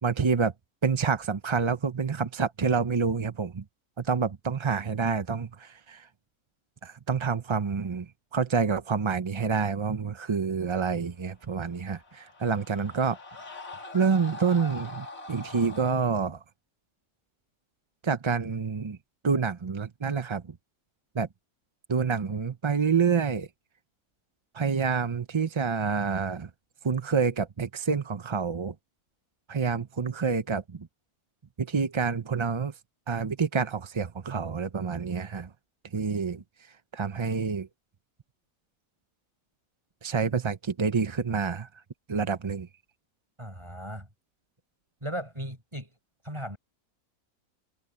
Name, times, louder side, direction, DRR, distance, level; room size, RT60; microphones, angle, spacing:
voice 1, 0.0-0.5 0.8-3.6 4.0-6.1 6.8-13.4 13.9-16.4 18.0-19.0 19.2-20.4 21.1-21.3 21.9-23.5 24.5-26.5 26.8-28.7 29.5-30.9 31.6-32.7 33.1-35.5 35.9-36.4 36.9-37.7 40.0-41.7 42.1-42.7, right 5 dB, 45° right, 0.3 m, -28 dB
Screaming, 11.5-16.0, left 2 dB, 65° left, 3.5 m, -43 dB
voice 2, 43.4-44.1 45.0-45.9 46.2-46.6, right 1 dB, 20° right, 6.1 m, -36 dB
omnidirectional pair, 1.6 m